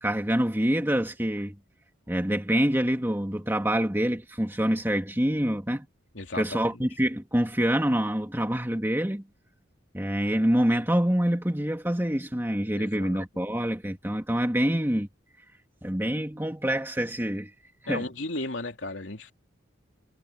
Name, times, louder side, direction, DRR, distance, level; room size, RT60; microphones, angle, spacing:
voice 1, 0.0-1.5 2.1-5.9 6.3-9.2 9.9-15.1 15.8-17.5 17.8-18.1, equal, 10° right, 2.1 m, -26 dB
voice 2, 6.1-6.7 12.7-13.2 17.9-19.3, left 2 dB, 70° left, 3.0 m, -35 dB
head